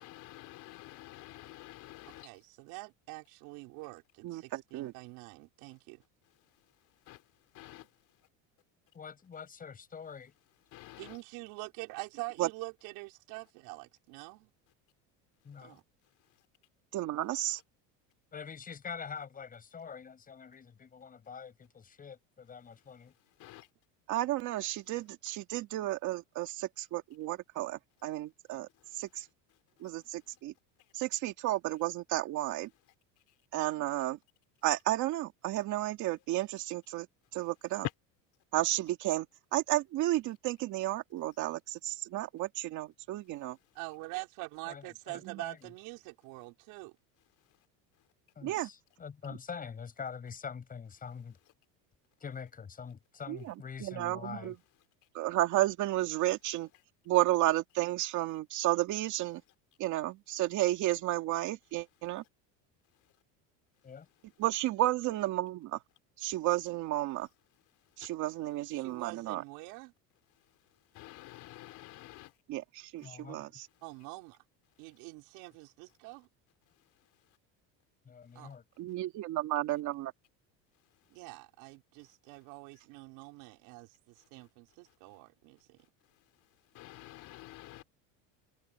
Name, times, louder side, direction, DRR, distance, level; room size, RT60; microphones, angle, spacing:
voice 1, 0.0-2.3 7.1-7.2 7.5-7.8 10.7-11.2 23.4-23.7 70.9-72.3 86.7-87.8, left 16 dB, 50° left, 3.4 m, -49 dB
voice 2, 2.2-6.0 11.0-14.5 15.6-15.8 43.7-46.9 68.7-69.9 73.8-74.4 74.8-76.3 78.3-78.5 81.1-85.8, right 25 dB, 70° right, 4.9 m, -45 dB
voice 3, 4.2-4.9 12.4-12.5 16.9-17.6 24.1-28.7 28.9-29.3 29.8-30.5 30.9-32.7 33.5-34.2 34.6-37.1 37.3-37.9 38.5-39.3 39.5-43.6 48.4-48.7 53.3-53.4 53.8-54.5 55.1-56.7 57.1-59.4 59.8-62.2 64.4-65.8 66.2-67.3 68.0-69.4 72.5-73.7 78.8-80.1, right 15 dB, 50° right, 2.3 m, -32 dB
voice 4, 8.9-10.3 15.4-15.8 18.3-23.1 44.6-45.7 48.4-51.4 52.2-54.5 63.8-64.1 73.0-73.4 78.0-78.6, left 6 dB, 20° left, 5.9 m, -45 dB
cardioid pair, 150°, 37 cm